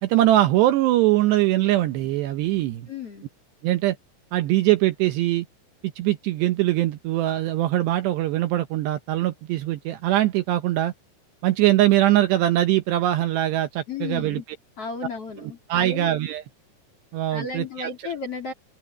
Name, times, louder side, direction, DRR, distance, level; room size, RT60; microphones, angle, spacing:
voice 1, 0.0-2.9 3.6-4.0 4.3-5.5 6.0-10.9 11.4-14.4 15.4-16.4 17.1-17.9, right 14 dB, 80° right, 2.5 m, -22 dB
voice 2, 2.9-3.2 13.9-14.4 14.8-16.1 17.3-18.5, left 4 dB, 45° left, 2.2 m, -33 dB
omnidirectional pair, 6.0 m